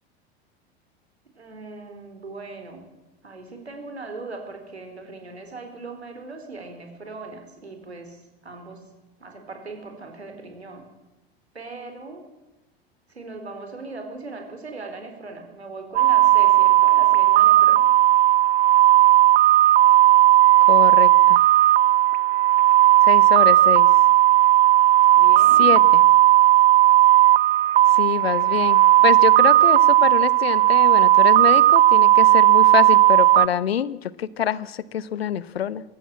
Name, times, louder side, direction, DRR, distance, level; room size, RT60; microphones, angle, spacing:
voice 1, 1.3-2.9 3.2-8.8 9.2-10.9 11.5-12.3 13.1-17.9 25.2-26.0, right 3 dB, 85° right, 5 dB, 4.6 m, -39 dB
sound 1, 16.0-33.5, right 14 dB, 65° right, 0.9 m, -15 dB
voice 2, 20.7-21.4 23.0-23.9 25.6-26.0 27.9-35.8, left 9 dB, 70° left, 19 dB, 1.1 m, -25 dB
22.0 x 16.5 x 8.7 m, 1.0 s
figure-of-eight pair, 80°, 32 cm